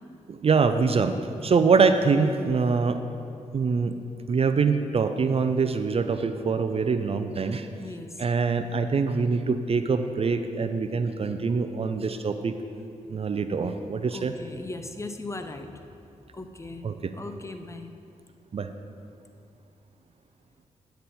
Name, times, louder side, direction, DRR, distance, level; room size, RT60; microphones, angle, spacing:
voice 1, 0.3-1.1 1.4-3.0 3.5-3.9 4.3-7.7 8.2-12.6 13.1-14.3 16.8-17.1 18.5-18.7, right 5 dB, 45° right, 9 dB, 0.5 m, -24 dB
voice 2, 5.9-6.3 7.8-8.2 14.1-15.9 16.3-17.9, left 2 dB, 20° left, 7 dB, 0.7 m, -39 dB
9.2 x 8.6 x 4.2 m, 2.5 s
cardioid pair, 70°, 14 cm